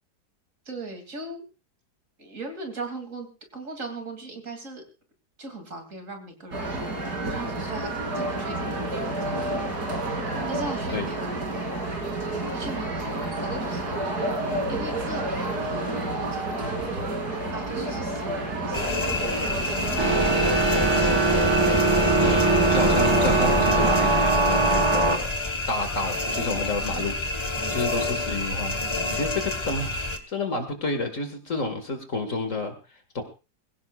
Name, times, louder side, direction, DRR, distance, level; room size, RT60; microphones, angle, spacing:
voice 1, 0.7-1.4 2.2-3.3 3.5-4.8 5.4-9.5 10.5-11.4 12.5-14.3 14.7-17.1 17.5-21.2 27.6-27.8 29.4-29.6, right 2 dB, 50° right, 4 dB, 3.2 m, -39 dB
sound 1, 6.5-24.2, right 2 dB, 75° right, 3.6 m, -30 dB
sound 2, 18.7-30.2, left 2 dB, 20° left, 1.3 m, -29 dB
sound 3, 20.0-25.2, right 2 dB, 20° right, 1.2 m, -21 dB
voice 2, 22.2-25.3 25.7-27.2 27.7-28.8 29.1-30.0 30.3-32.7 33.1-33.2, left 2 dB, 50° left, 7 dB, 2.3 m, -29 dB
22.0 x 16.5 x 2.4 m, 0.30 s
omnidirectional pair, 1.7 m